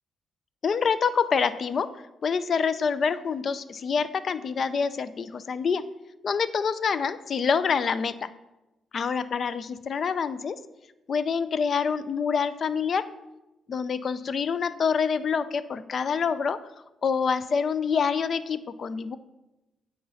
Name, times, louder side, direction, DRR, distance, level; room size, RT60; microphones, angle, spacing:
voice 1, 0.6-5.9 6.2-8.3 8.9-10.6 11.1-13.1 13.7-16.7 17.0-19.2, left 6 dB, 55° left, 14 dB, 0.5 m, -26 dB
9.3 x 3.8 x 5.6 m, 0.99 s
supercardioid pair, 55°, 0 cm